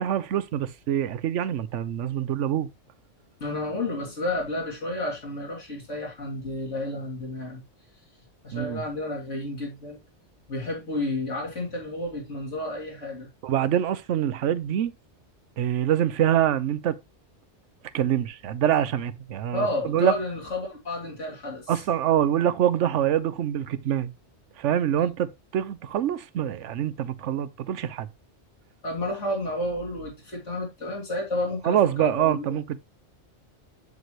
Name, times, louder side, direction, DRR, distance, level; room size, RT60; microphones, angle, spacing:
voice 1, 0.0-2.7 8.5-8.8 13.4-14.9 15.6-17.0 17.9-20.1 21.7-24.1 24.6-28.1 31.6-32.8, right 10 dB, 80° right, 1.0 m, -25 dB
voice 2, 3.4-7.6 8.4-10.0 10.5-13.3 19.5-21.8 28.8-32.6, left 1 dB, 90° left, 3.4 m, -31 dB
7.7 x 7.3 x 3.1 m
omnidirectional pair, 1.2 m